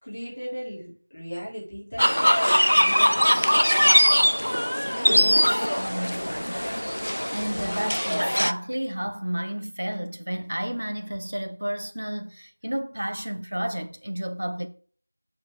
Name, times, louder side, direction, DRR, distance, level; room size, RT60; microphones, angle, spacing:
voice 1, 0.0-4.0, equal, 30° left, 3.7 m, -38 dB
sound 1, 2.0-8.5, equal, 85° left, 0.7 m, -21 dB
voice 2, 5.0-14.7, equal, 55° right, 0.9 m, -32 dB
8.3 x 4.7 x 4.6 m
figure-of-eight pair, 175°, 0 cm